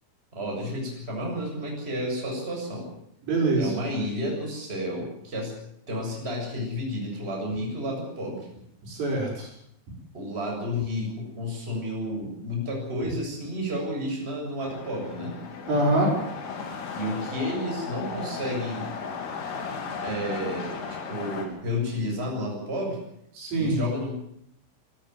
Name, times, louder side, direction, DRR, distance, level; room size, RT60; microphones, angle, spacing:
voice 1, 0.3-2.9 3.5-5.5 5.9-8.5 10.1-15.4 16.9-18.9 20.0-23.0 23.6-24.1, equal, 10° right, -1 dB, 7.3 m, -31 dB
voice 2, 3.3-3.7 8.8-9.5 15.7-16.1 23.4-23.8, right 2 dB, 55° right, -1 dB, 8.3 m, -24 dB
sound 1, 14.6-21.5, left 5 dB, 70° left, 5.6 m, -36 dB
24.0 x 14.0 x 9.4 m, 0.73 s
omnidirectional pair, 6.0 m